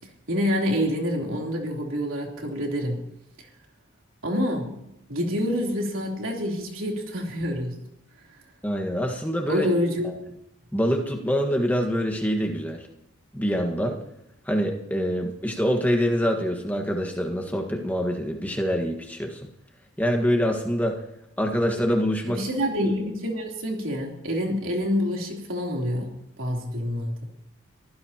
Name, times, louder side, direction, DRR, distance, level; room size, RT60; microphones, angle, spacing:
voice 1, 0.3-3.0 4.2-4.7 5.1-7.7 9.5-10.1 22.3-27.1, equal, 80° right, 0 dB, 3.4 m, -27 dB
voice 2, 8.6-9.7 10.0-10.1 10.7-12.8 13.3-14.0 14.5-19.4 20.0-21.0 21.4-22.4, equal, 10° left, 2 dB, 1.6 m, -25 dB
23.5 x 15.5 x 2.9 m, 0.82 s
head